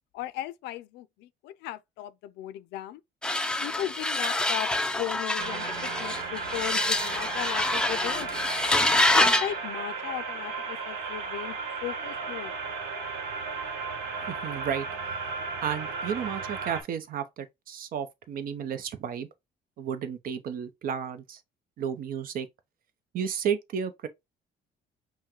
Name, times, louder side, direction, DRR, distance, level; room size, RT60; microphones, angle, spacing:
voice 1, 0.1-3.0 3.6-4.7 5.0-8.3 9.1-12.5, left 13 dB, 85° left, 0.4 m, -37 dB
sound 1, 3.2-9.5, left 1 dB, 5° left, 0.4 m, -26 dB
sound 2, 5.4-16.8, right 4 dB, 75° right, 1.1 m, -35 dB
voice 2, 14.3-14.9 15.6-19.3 19.8-21.4 21.8-22.5 23.1-24.1, right 8 dB, 55° right, 0.7 m, -32 dB
5.5 x 2.2 x 3.0 m
cardioid pair, 110°, 17 cm